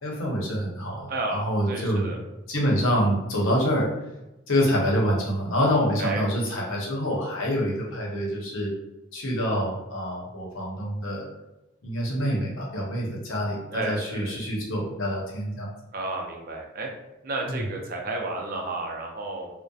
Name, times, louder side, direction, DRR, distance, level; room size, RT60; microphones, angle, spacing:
voice 1, 0.0-2.2 2.5-3.9 4.5-8.7 9.1-11.3 11.8-15.7 17.5-17.6, equal, 85° left, -3 dB, 0.8 m, -26 dB
voice 2, 1.1-1.4 1.7-2.2 6.0-6.2 13.7-14.4 15.9-16.9 17.2-19.5, right 2 dB, 45° right, 1 dB, 0.5 m, -32 dB
2.6 x 2.1 x 2.3 m, 0.97 s
head